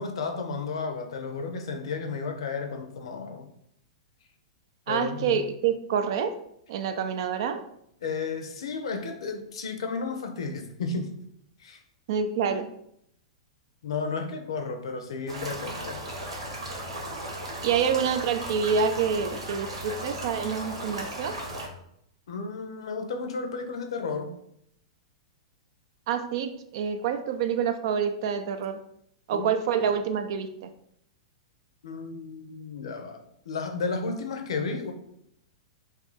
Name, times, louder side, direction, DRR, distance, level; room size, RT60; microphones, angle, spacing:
voice 1, 0.0-3.5 4.9-5.4 8.0-11.1 11.6-11.8 13.8-16.0 22.3-24.3 29.3-29.5 31.8-34.9, left 4 dB, 65° left, 6 dB, 0.5 m, -33 dB
voice 2, 4.9-6.3 6.7-7.6 12.1-12.7 17.6-21.4 26.1-28.8 29.3-30.7, right 7 dB, 55° right, 8 dB, 0.4 m, -27 dB
sound 1, 15.3-21.7, right 1 dB, 80° right, 1.0 m, -36 dB
2.6 x 2.5 x 3.9 m, 0.74 s
figure-of-eight pair, 105°, 3 cm